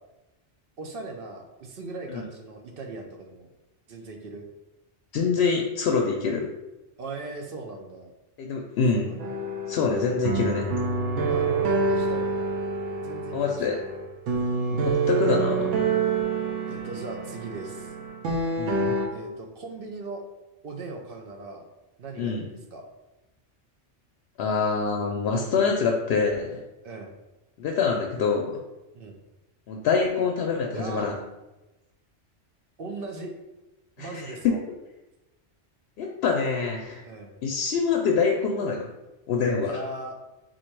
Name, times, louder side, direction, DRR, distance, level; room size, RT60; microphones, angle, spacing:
voice 1, 0.8-3.5 3.9-4.5 7.0-8.1 9.0-9.3 11.3-12.5 13.0-13.8 14.3-14.6 16.6-17.9 19.1-20.2 20.6-21.7 22.0-22.9 26.8-27.2 28.9-29.2 30.7-31.1 32.8-33.3 34.0-34.6 37.0-37.4 39.6-40.1, right 3 dB, 60° right, 2 dB, 0.7 m, -38 dB
voice 2, 5.1-6.5 8.4-9.1 9.7-10.7 13.3-13.8 14.7-15.7 18.6-18.9 22.2-22.4 24.4-26.6 27.6-28.6 29.7-31.2 34.0-34.5 36.0-37.0 37.4-38.9 39.3-39.7, left 5 dB, 65° left, 1 dB, 0.7 m, -25 dB
sound 1, 9.2-19.1, right 4 dB, 80° right, 1.0 m, -27 dB
3.8 x 2.5 x 4.5 m, 1.0 s
omnidirectional pair, 1.2 m